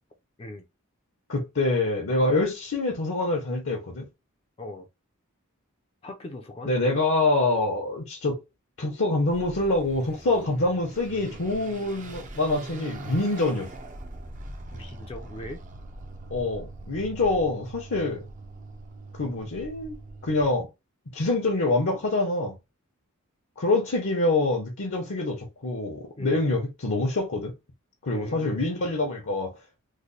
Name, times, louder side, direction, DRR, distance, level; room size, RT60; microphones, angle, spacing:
voice 1, 1.3-4.1 6.7-8.4 8.8-13.7 16.3-18.2 19.1-20.0 20.2-20.7 21.1-22.6 23.6-27.5 28.0-29.6, left 2 dB, 60° left, 0.9 m, -25 dB
voice 2, 6.0-6.8 14.7-15.6 26.2-26.5 28.1-28.6, left 1 dB, 25° left, 0.5 m, -40 dB
Car passing by / Accelerating revving vroom, 9.3-20.5, right 2 dB, 35° right, 0.5 m, -42 dB
3.2 x 2.1 x 4.0 m
head